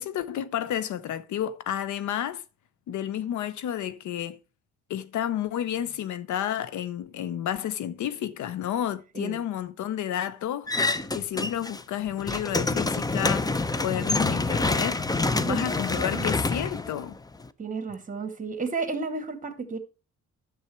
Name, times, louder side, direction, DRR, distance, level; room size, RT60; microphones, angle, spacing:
voice 1, 0.0-2.4 2.9-4.4 4.9-10.7 11.1-15.0 15.4-17.2, left 10 dB, 75° left, 0.8 m, -31 dB
sound 1, 10.7-11.8 12.1-17.5, left 3 dB, 15° left, 0.6 m, -27 dB
voice 2, 15.3-16.3 17.6-19.8, right 4 dB, 25° right, 2.1 m, -33 dB
10.0 x 7.2 x 4.5 m
cardioid pair, 90°, 30 cm